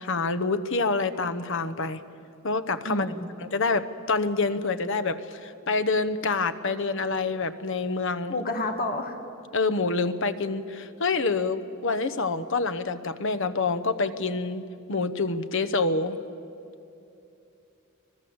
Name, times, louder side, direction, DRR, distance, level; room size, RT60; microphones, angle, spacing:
voice 1, 0.0-2.0 2.4-3.1 3.4-8.3 9.5-14.6 14.9-16.2, left 3 dB, 65° left, 12 dB, 1.0 m, -27 dB
voice 2, 2.9-3.3 8.3-9.2, left 2 dB, 45° left, 4 dB, 2.1 m, -29 dB
25.0 x 19.0 x 8.0 m, 2.8 s
head